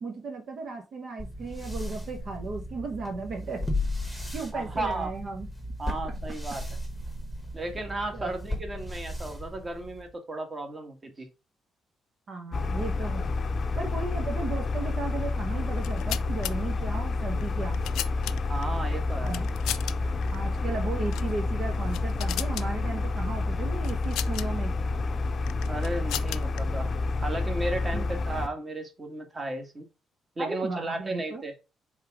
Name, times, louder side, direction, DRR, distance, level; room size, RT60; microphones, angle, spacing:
voice 1, 0.0-3.7 4.0-5.5 5.9-6.1 8.1-8.3 12.3-13.3 13.8-17.8 19.2-19.5 20.3-24.8 27.9-28.2 30.4-31.4, right 3 dB, 55° right, 1.2 m, -35 dB
sound 1, 1.2-10.1, left 1 dB, ahead, 1.3 m, -35 dB
voice 2, 4.5-5.1 5.8-6.6 7.5-11.3 18.5-19.4 25.7-26.9 27.2-29.9 30.4-31.5, right 2 dB, 30° right, 1.8 m, -34 dB
sound 2, 12.5-28.5, left 3 dB, 45° left, 0.6 m, -29 dB
sound 3, 15.7-16.5 17.4-18.6 19.3-19.9 20.2-20.4 21.1-21.3 21.7-22.7 23.8-24.5 25.5-26.6, left 13 dB, 90° left, 0.4 m, -35 dB
5.5 x 3.7 x 4.8 m
cardioid pair, 90°, 0 cm